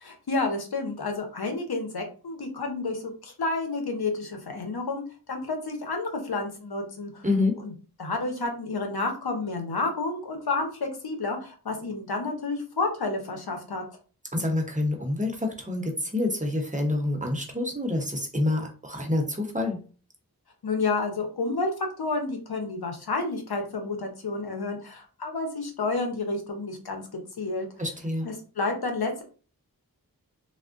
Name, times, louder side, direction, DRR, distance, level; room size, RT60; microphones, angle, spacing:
voice 1, 0.0-5.0 5.3-7.3 7.6-7.7 8.0-13.8 20.6-21.7 22.0-27.7 28.2-29.2, left 3 dB, 90° left, 3 dB, 0.8 m, -30 dB
voice 2, 7.2-7.5 14.3-19.8 27.8-28.3, left 2 dB, 20° right, 2 dB, 0.8 m, -27 dB
3.5 x 2.1 x 2.4 m, 0.37 s
wide cardioid pair, 40°, 37 cm